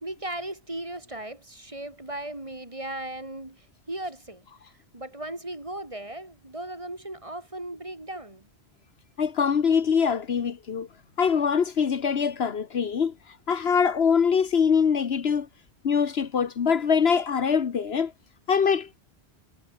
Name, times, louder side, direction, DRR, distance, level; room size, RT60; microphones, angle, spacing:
voice 1, 0.0-4.5 4.9-8.5, right 1 dB, 30° right, 3.1 m, -37 dB
voice 2, 9.2-10.9 11.2-13.1 13.5-15.5 15.8-18.1 18.5-19.0, left 6 dB, 65° left, 1.3 m, -23 dB
omnidirectional pair, 1.1 m